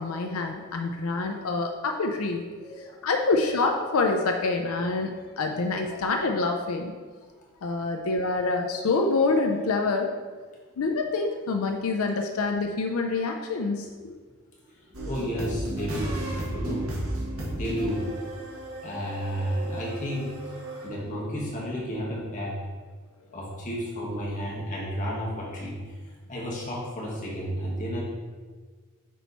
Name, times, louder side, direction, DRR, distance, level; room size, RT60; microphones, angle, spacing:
voice 1, 0.0-2.5 2.8-6.9 7.6-10.2 10.8-14.1, left 3 dB, 80° left, 4 dB, 0.5 m, -26 dB
voice 2, 2.6-3.0 5.9-6.0 14.8-16.2 16.5-16.9 17.5-18.1 18.8-20.3 20.8-22.6 23.3-25.8 26.3-28.0, equal, 35° left, -5 dB, 1.5 m, -32 dB
sound 1, 14.9-20.9, right 1 dB, 75° right, 1.9 m, -35 dB
6.1 x 4.5 x 4.1 m, 1.5 s
head